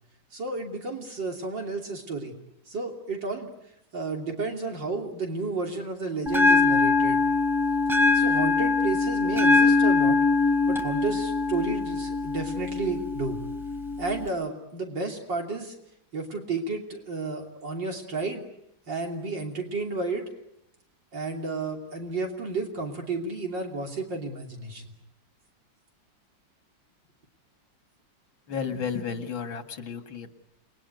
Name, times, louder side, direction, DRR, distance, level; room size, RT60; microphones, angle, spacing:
voice 1, 0.3-2.3 2.7-3.5 3.9-7.2 8.1-10.2 10.7-13.4 14.0-15.8 16.1-18.5 18.9-20.2 21.1-24.9, right 3 dB, 65° right, 2 dB, 3.7 m, -32 dB
Bell, 6.3-14.3, left 3 dB, ahead, 3.9 m, -23 dB
voice 2, 28.5-30.3, left 6 dB, 85° left, 7 dB, 2.9 m, -32 dB
29.5 x 21.5 x 9.4 m, 0.82 s
omnidirectional pair, 2.1 m